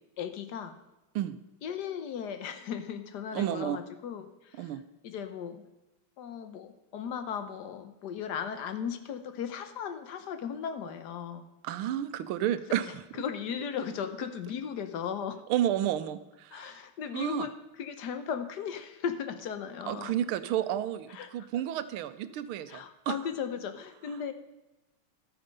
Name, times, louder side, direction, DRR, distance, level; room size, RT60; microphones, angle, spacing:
voice 1, 0.2-0.8 1.6-4.6 5.0-5.6 6.2-11.4 13.2-15.4 16.5-17.5 17.8-20.1 21.1-21.3 22.7-24.3, left 7 dB, 60° left, 9 dB, 1.3 m, -36 dB
voice 2, 3.3-3.8 4.6-4.8 11.6-13.2 15.5-16.8 17.1-17.5 19.9-23.2, right 11 dB, 90° right, 13 dB, 1.5 m, -31 dB
13.0 x 8.7 x 5.3 m, 1.0 s
omnidirectional pair, 2.3 m